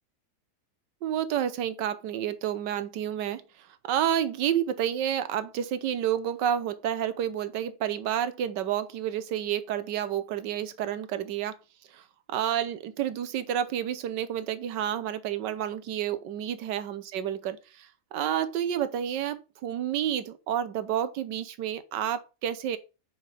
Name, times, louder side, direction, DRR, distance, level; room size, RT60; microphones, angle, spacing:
voice 1, 1.0-11.6 11.9-22.8, right 10 dB, 70° right, 1.3 m, -30 dB
5.7 x 4.8 x 4.8 m
omnidirectional pair, 2.2 m